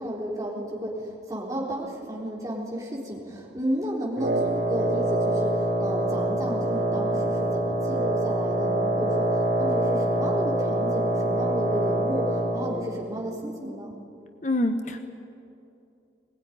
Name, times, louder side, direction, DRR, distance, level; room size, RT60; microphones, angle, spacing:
voice 1, 0.0-13.9, equal, 20° right, -3 dB, 3.8 m, -32 dB
Wind instrument woodwind instrument, 4.2-12.7, right 1 dB, 60° right, 3.7 m, -25 dB
voice 2, 14.4-15.0, left 1 dB, 40° left, 7 dB, 1.1 m, -25 dB
20.5 x 20.0 x 10.0 m, 2.7 s
head